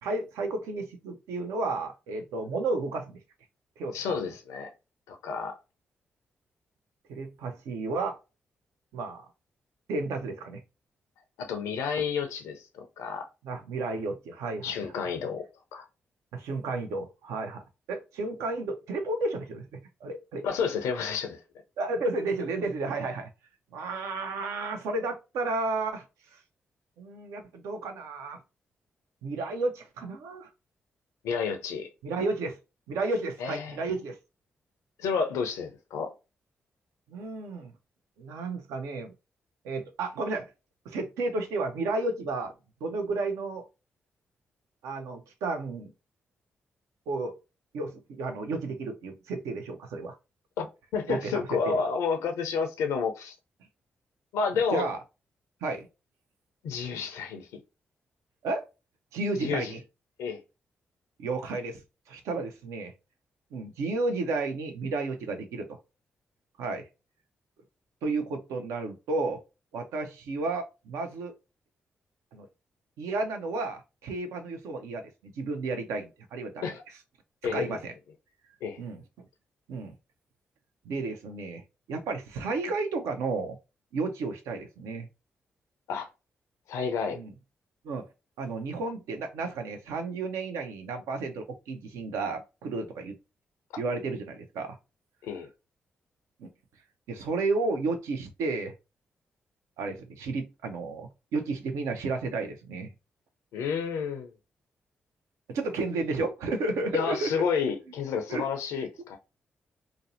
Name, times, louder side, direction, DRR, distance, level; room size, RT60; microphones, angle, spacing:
voice 1, 0.0-3.2 3.8-4.2 7.1-8.2 8.9-9.3 9.9-10.6 13.4-14.8 16.3-17.6 17.9-20.5 21.8-23.3 23.7-26.0 27.0-28.4 29.2-30.5 32.0-32.6 32.9-34.2 37.1-37.7 38.2-39.1 39.6-40.5 40.9-42.5 42.8-43.7 44.8-45.9 47.1-47.3 47.7-50.2 51.1-51.8 54.7-55.0 55.6-55.9 58.4-58.7 59.1-59.8 61.2-61.8 62.1-62.9 63.5-65.8 66.6-66.9 68.0-69.4 69.7-71.3 72.3-72.5 73.0-76.6 77.5-77.9 78.8-79.0 79.7-79.9 80.8-81.6 81.9-83.6 83.9-85.1 87.1-87.3 87.8-88.1 88.4-93.2 93.8-94.8 96.4-96.5 97.1-98.7 99.8-102.9 105.5-107.4 108.3-108.4, right 3 dB, 80° right, 0.5 m, -32 dB
voice 2, 3.9-4.7 5.1-5.5 11.4-13.3 14.6-15.4 15.7-15.9 20.4-21.4 31.2-31.9 33.4-33.8 35.0-36.1 50.6-50.7 50.9-53.3 54.3-54.9 56.6-57.5 59.4-59.7 60.2-60.4 76.6-76.8 77.4-77.8 78.6-78.8 85.9-86.1 86.7-87.2 95.2-95.5 103.5-104.3 106.9-109.2, left 6 dB, 80° left, 0.4 m, -30 dB
2.5 x 2.0 x 2.5 m
hypercardioid pair, 40°, 5 cm